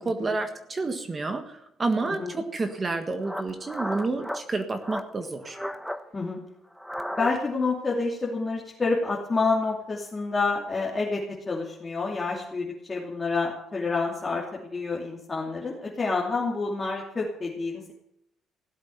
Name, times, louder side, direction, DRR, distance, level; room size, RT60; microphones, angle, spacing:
voice 1, 0.0-5.6, right 3 dB, 25° right, 6 dB, 1.7 m, -29 dB
voice 2, 2.0-2.4 6.1-6.4 7.1-17.9, left 3 dB, 25° left, -3 dB, 2.9 m, -28 dB
sound 1, 2.7-2.8 3.2-4.4 4.8-5.1 5.4-6.0 6.7-7.6, equal, ahead, 1.2 m, -34 dB
17.0 x 8.1 x 9.6 m, 0.79 s
cardioid pair, 120°, 0 cm